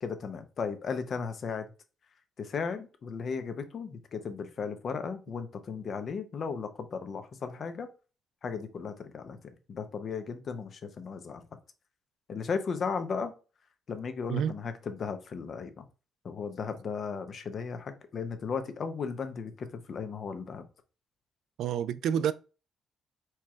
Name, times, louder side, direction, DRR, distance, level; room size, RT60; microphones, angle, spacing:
voice 1, 0.0-1.7 2.4-7.9 8.4-11.4 12.3-13.3 13.9-15.9 16.2-20.6, left 5 dB, 50° left, 0.7 m, -36 dB
voice 2, 21.6-22.3, right 9 dB, 80° right, 0.3 m, -28 dB
4.5 x 2.4 x 4.3 m
cardioid pair, 90°, 0 cm